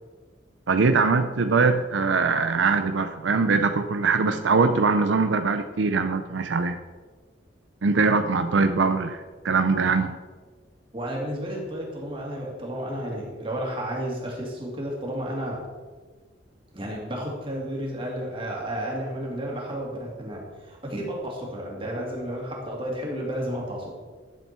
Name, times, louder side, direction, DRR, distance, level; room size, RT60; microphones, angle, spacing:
voice 1, 0.7-6.8 7.8-10.1, right 4 dB, 80° right, 8 dB, 0.5 m, -22 dB
voice 2, 10.9-15.6 16.7-23.9, equal, 30° right, -2 dB, 2.5 m, -32 dB
11.5 x 7.2 x 4.5 m, 1.4 s
head